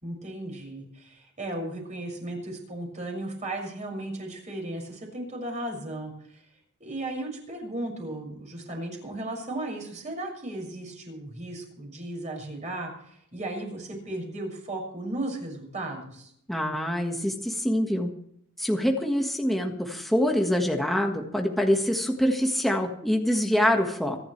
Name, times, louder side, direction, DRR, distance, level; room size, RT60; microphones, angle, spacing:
voice 1, 0.0-6.4 6.8-16.3, right 1 dB, 35° right, 1 dB, 6.4 m, -35 dB
voice 2, 16.5-18.1 18.6-24.2, equal, ahead, 1 dB, 1.6 m, -25 dB
25.0 x 12.0 x 3.3 m, 0.68 s
head